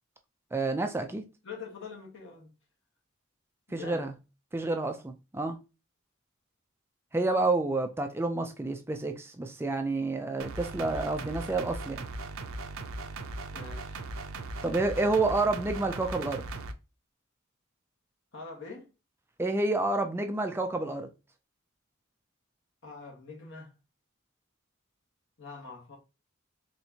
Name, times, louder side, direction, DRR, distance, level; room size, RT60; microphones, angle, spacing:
voice 1, 0.5-1.2 3.7-4.1 4.5-5.6 7.1-12.0 14.6-16.4 19.4-21.1, right 2 dB, 10° right, 0.4 m, -29 dB
voice 2, 1.4-2.5 3.7-4.1 10.8-11.1 13.5-14.0 18.3-18.9 22.8-23.7 25.4-26.0, left 4 dB, 60° left, 1.4 m, -44 dB
sound 1, 10.4-16.7, right 2 dB, 75° right, 0.5 m, -39 dB
4.3 x 3.2 x 2.8 m
head